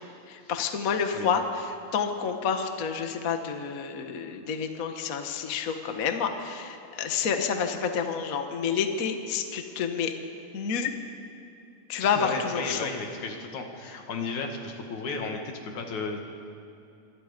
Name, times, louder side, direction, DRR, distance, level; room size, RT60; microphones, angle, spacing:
voice 1, 0.3-10.1 10.5-10.9 11.9-12.9, left 6 dB, 80° left, 5 dB, 0.7 m, -29 dB
voice 2, 12.0-16.2, left 4 dB, 60° left, 3 dB, 3.2 m, -34 dB
26.0 x 24.5 x 5.2 m, 2.8 s
omnidirectional pair, 4.0 m